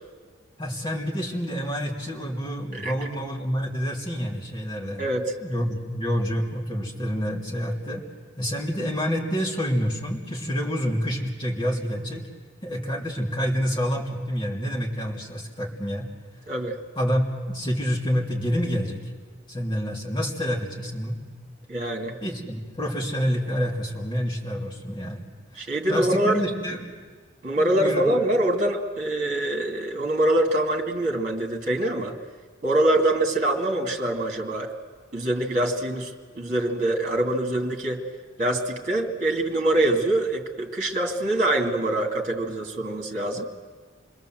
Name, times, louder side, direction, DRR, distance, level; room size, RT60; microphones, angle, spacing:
voice 1, 0.6-5.0 5.4-8.0 8.4-12.2 12.6-16.1 17.0-19.0 19.5-21.2 22.2-25.2 25.5-26.9 27.5-28.0, equal, 25° left, -1 dB, 3.1 m, -28 dB
voice 2, 5.0-5.3 16.5-16.8 21.7-22.2 25.6-26.4 27.4-32.2 32.6-34.7 35.1-36.1 36.4-38.1 38.4-43.4, right 1 dB, 40° right, 3 dB, 2.4 m, -24 dB
27.0 x 21.0 x 7.8 m, 1.5 s
head